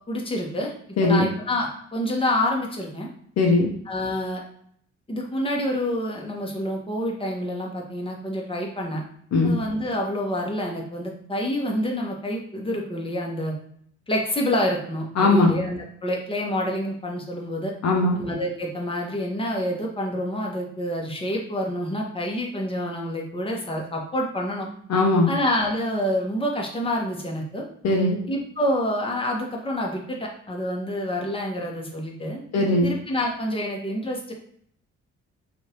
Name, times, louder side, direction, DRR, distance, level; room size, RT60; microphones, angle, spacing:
voice 1, 0.1-0.7 1.0-3.1 3.9-4.4 5.1-9.0 9.4-13.5 14.1-17.7 18.1-24.7 25.3-27.7 28.3-34.3, left 1 dB, 15° left, -1 dB, 1.0 m, -27 dB
voice 2, 1.0-1.3 3.4-3.7 9.3-9.5 15.2-15.5 17.8-18.2 24.9-25.3 27.8-28.2 32.5-32.9, left 2 dB, 50° left, 1 dB, 0.7 m, -19 dB
2.8 x 2.5 x 2.8 m, 0.63 s
hypercardioid pair, 45°, 34 cm